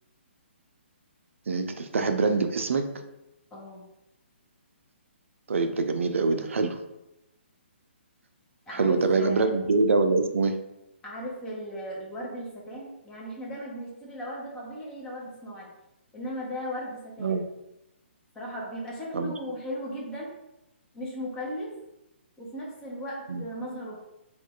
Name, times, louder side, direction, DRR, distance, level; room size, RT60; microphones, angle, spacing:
voice 1, 1.5-2.9 5.5-6.8 8.7-10.5 17.2-17.4 19.1-19.3 23.3-23.4, right 3 dB, 90° right, 7 dB, 0.4 m, -24 dB
voice 2, 3.5-3.8 8.7-9.5 11.0-15.7 16.1-17.4 18.3-20.3 20.9-21.7 22.4-24.0, equal, 10° left, -4 dB, 0.6 m, -37 dB
3.1 x 2.2 x 3.6 m, 0.91 s
hypercardioid pair, 160°, 7 cm